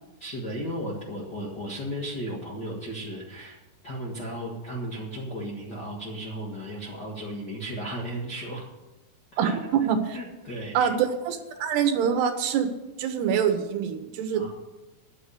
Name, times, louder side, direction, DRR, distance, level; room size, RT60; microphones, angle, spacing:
voice 1, 0.2-3.6 3.8-8.7 9.3-9.6 10.1-10.9 14.3-14.5, right 1 dB, 50° left, -5 dB, 1.2 m, -35 dB
voice 2, 9.4-10.2 10.7-12.7 13.0-14.5, right 7 dB, 75° right, 7 dB, 3.0 m, -25 dB
11.0 x 7.4 x 8.3 m, 1.1 s
omnidirectional pair, 4.9 m